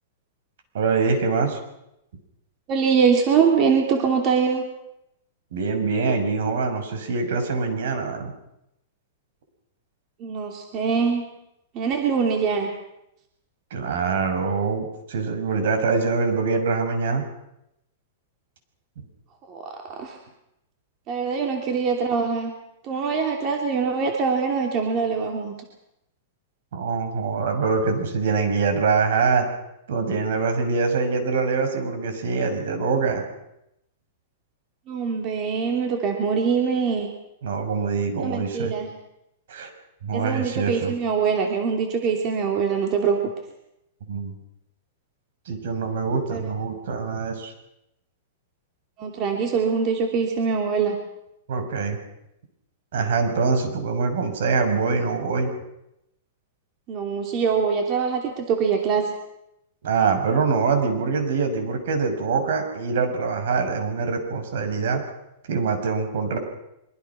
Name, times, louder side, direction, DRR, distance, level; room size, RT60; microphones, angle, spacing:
voice 1, 0.7-1.6 5.5-8.3 13.7-17.2 19.9-20.0 26.7-29.5 29.9-33.2 37.4-38.7 39.5-39.7 40.0-40.9 44.1-44.3 45.5-47.5 51.5-52.0 52.9-55.5 59.8-65.0 65.5-66.4, right 4 dB, 70° right, 6 dB, 6.3 m, -24 dB
voice 2, 2.7-4.6 10.2-11.3 11.7-12.7 19.5-20.2 21.1-22.5 22.8-25.5 34.9-37.1 38.2-38.9 40.1-43.2 46.3-46.5 49.0-51.0 56.9-59.1, right 6 dB, 30° right, 2 dB, 3.0 m, -23 dB
24.5 x 24.0 x 6.0 m, 0.83 s
supercardioid pair, 160°, 0 cm